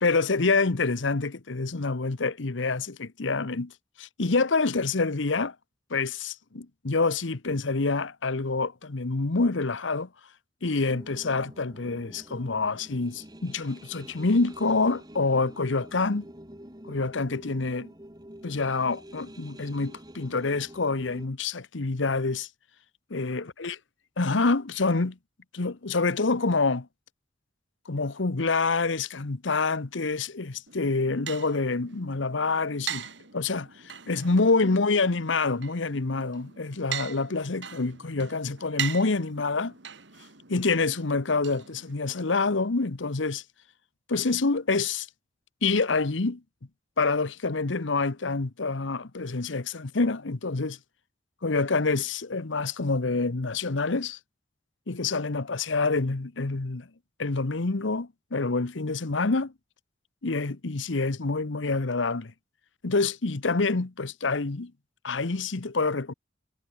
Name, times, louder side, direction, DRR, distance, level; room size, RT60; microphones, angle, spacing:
voice 1, 0.0-3.7 4.0-5.5 5.9-10.1 10.6-16.2 16.9-17.9 18.4-22.5 23.1-23.8 24.2-25.2 25.5-26.9 27.9-33.7 34.1-39.7 40.5-43.4 44.1-45.1 45.6-46.4 47.0-50.8 51.4-54.2 54.9-56.9 57.2-59.5 60.2-62.3 62.8-64.7 65.0-66.1, left 3 dB, 80° left, 1.0 m, -27 dB
sound 1, 10.8-21.3, equal, 20° right, 3.0 m, -47 dB
sound 2, 30.7-42.3, right 8 dB, 70° right, 2.6 m, -41 dB
head